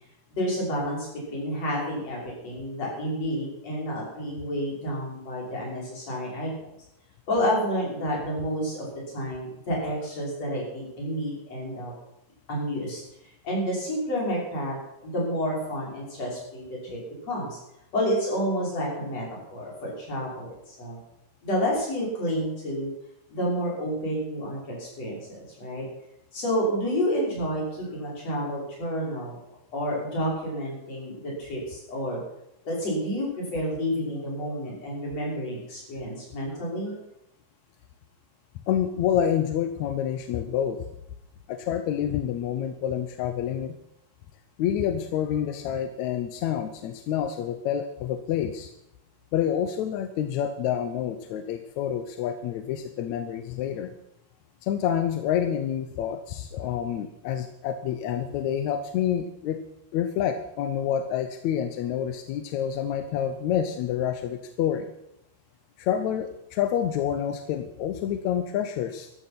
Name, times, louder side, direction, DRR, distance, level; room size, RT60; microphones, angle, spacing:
voice 1, 0.4-6.7 7.3-8.9 9.1-11.9 12.5-13.0 13.4-14.8 15.0-17.0 17.2-17.6 17.9-21.0 21.4-22.9 23.3-25.8 26.3-29.4 29.7-32.2 32.7-36.9, equal, 50° left, -4 dB, 7.0 m, -29 dB
voice 2, 38.7-40.9 41.5-43.7 44.6-48.7 49.3-53.9 54.6-59.6 59.9-64.9 65.8-69.2, left 9 dB, 70° left, 8 dB, 1.9 m, -28 dB
14.0 x 12.5 x 6.0 m, 0.82 s
omnidirectional pair, 3.8 m